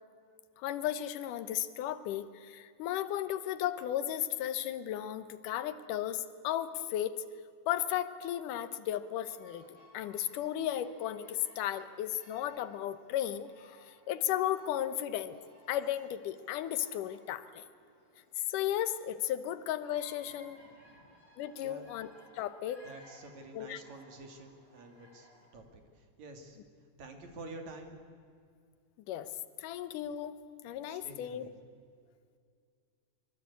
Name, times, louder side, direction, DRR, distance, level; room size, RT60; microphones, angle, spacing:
voice 1, 0.6-7.2 7.7-15.4 15.7-17.6 18.4-20.6 21.4-22.1 22.3-22.8 23.5-23.8 29.1-29.3 29.6-31.5, left 11 dB, 75° left, 12 dB, 2.5 m, -35 dB
Bird vocalization bird call bird song, 8.4-25.7, left 1 dB, 20° right, 7.5 m, -61 dB
voice 2, 20.6-21.2 21.6-22.0 22.8-26.6 27.0-28.0 30.9-31.5, right 2 dB, 60° right, 5 dB, 3.6 m, -49 dB
24.0 x 23.5 x 8.3 m, 2.2 s
omnidirectional pair, 3.9 m